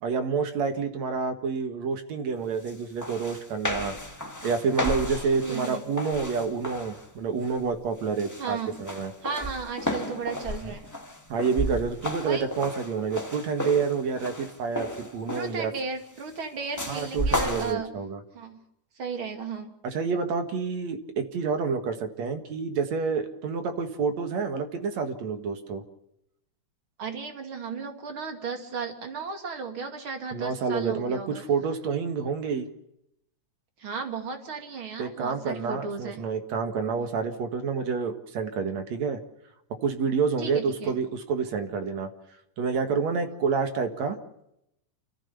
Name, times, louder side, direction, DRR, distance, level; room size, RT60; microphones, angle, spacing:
voice 1, 0.0-3.9 4.4-9.1 11.3-15.7 16.9-18.2 19.8-25.8 30.3-32.7 35.0-39.2 39.8-42.1 42.6-44.2, right 5 dB, 65° right, 7 dB, 2.9 m, -28 dB
sound 1, 2.7-2.8 3.0-7.1 7.5-7.8 8.2-15.7 16.8-17.7, left 1 dB, 15° left, 0.6 m, -33 dB
voice 2, 5.4-5.8 8.4-8.7 9.2-10.9 12.2-12.5 15.3-17.9 18.3-18.6 19.0-19.7 27.0-31.4 33.8-36.2 37.0-37.1 40.4-40.9, right 5 dB, 45° right, 5 dB, 3.1 m, -35 dB
28.5 x 14.5 x 7.0 m, 0.80 s
omnidirectional pair, 3.4 m